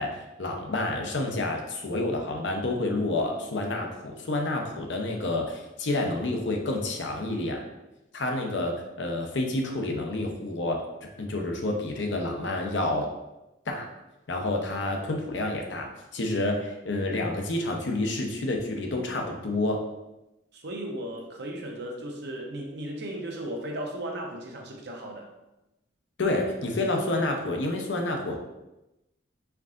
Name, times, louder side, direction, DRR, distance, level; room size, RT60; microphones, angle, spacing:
voice 1, 0.0-7.6 8.1-10.8 11.2-13.1 13.7-13.9 14.3-19.8 26.2-28.4, left 2 dB, 70° left, 2 dB, 0.7 m, -29 dB
voice 2, 20.5-25.3, right 1 dB, 60° right, 1 dB, 0.7 m, -36 dB
4.6 x 3.7 x 2.4 m, 0.95 s
head